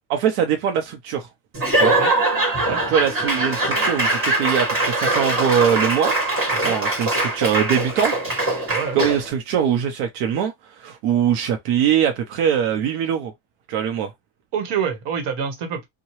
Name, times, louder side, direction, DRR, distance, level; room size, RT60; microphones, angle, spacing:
voice 1, 0.1-1.3 1.7-2.0 2.9-6.1 6.6-8.2 8.5-10.5 10.8-13.3 13.7-14.1, right 8 dB, 85° right, 0.8 m, -22 dB
Laughter / Applause / Crowd, 1.5-9.3, right 2 dB, 25° right, 1.5 m, -22 dB
voice 2, 6.5-6.8 8.7-9.0 14.5-15.8, right 7 dB, 55° right, 1.2 m, -27 dB
2.9 x 2.2 x 3.0 m
cardioid pair, 135°, 49 cm